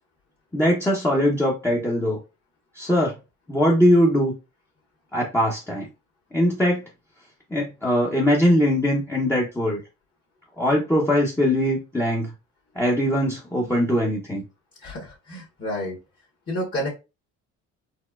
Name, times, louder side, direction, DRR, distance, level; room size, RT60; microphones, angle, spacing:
voice 1, 0.5-2.2 2.8-3.1 3.5-4.3 5.1-5.9 6.3-6.8 7.5-9.8 10.6-12.3 12.8-14.4, equal, 5° left, -3 dB, 1.0 m, -21 dB
voice 2, 14.8-16.0 16.5-16.9, equal, 35° left, -3 dB, 1.6 m, -30 dB
4.3 x 2.1 x 2.4 m, 0.28 s
supercardioid pair, 70°, 33 cm